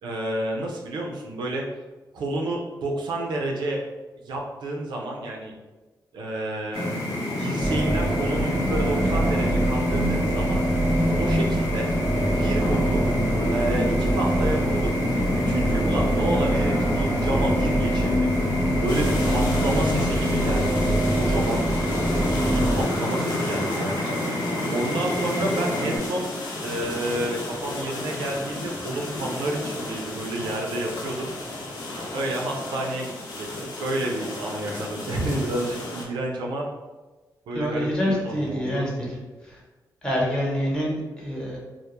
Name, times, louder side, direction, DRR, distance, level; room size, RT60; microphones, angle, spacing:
voice 1, 0.0-1.6 2.1-3.8 4.2-5.5 6.1-6.9 7.4-10.6 11.2-11.9 12.3-13.1 13.5-15.0 15.3-18.3 18.8-21.8 22.3-24.1 24.7-26.3 26.6-31.3 32.1-33.5 33.8-36.7 37.5-38.9, right 1 dB, 80° right, 0 dB, 0.4 m, -29 dB
sound 1, 6.7-26.0, left 1 dB, 65° left, 0.9 m, -27 dB
sound 2, 7.6-22.8, right 1 dB, 25° right, 0.5 m, -25 dB
sound 3, 18.9-36.0, left 2 dB, 90° left, 0.5 m, -34 dB
voice 2, 37.5-39.1 39.5-39.6 40.0-41.6, equal, 10° left, -4 dB, 0.9 m, -26 dB
2.2 x 2.0 x 2.9 m, 1.2 s
cardioid pair, 60°, 7 cm